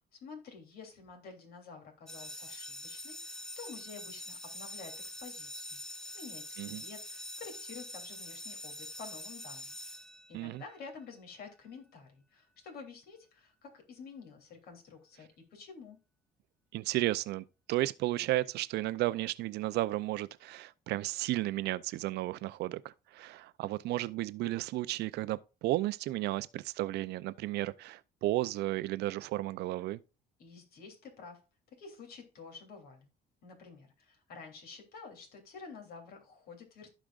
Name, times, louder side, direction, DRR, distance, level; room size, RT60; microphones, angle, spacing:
voice 1, 0.2-5.8 6.1-9.8 10.3-16.0 30.4-31.4 31.7-33.1 33.4-36.9, left 5 dB, 65° left, 3.1 m, -50 dB
sound 1, 2.1-10.7, left 1 dB, 5° left, 0.5 m, -45 dB
voice 2, 16.7-30.0, right 16 dB, 80° right, 0.5 m, -33 dB
15.0 x 5.0 x 2.5 m
cardioid pair, 110°, 17 cm